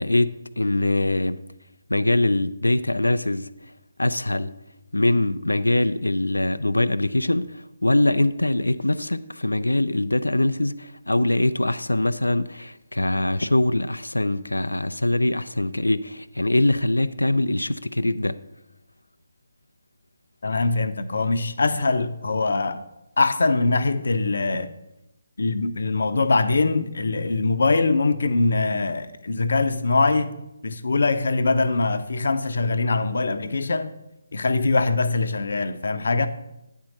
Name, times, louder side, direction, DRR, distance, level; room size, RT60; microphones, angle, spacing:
voice 1, 0.0-1.4 1.9-3.5 4.0-4.5 4.9-18.4, left 1 dB, 90° left, 0.4 m, -23 dB
voice 2, 20.4-22.8 23.2-24.7 25.4-30.3 30.6-33.9 34.3-36.3, left 3 dB, 65° left, 0.7 m, -22 dB
9.5 x 4.5 x 6.3 m
figure-of-eight pair, 150°, 0 cm